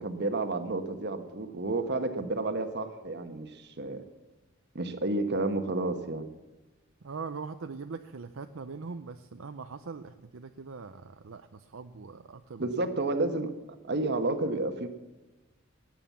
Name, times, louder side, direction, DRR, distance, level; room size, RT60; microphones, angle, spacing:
voice 1, 0.0-4.1 4.7-6.3 12.6-13.5 13.8-14.9, right 2 dB, 55° right, 9 dB, 1.2 m, -31 dB
voice 2, 7.0-12.7, right 4 dB, 75° right, 8 dB, 0.6 m, -41 dB
18.5 x 9.0 x 7.3 m, 1.1 s
head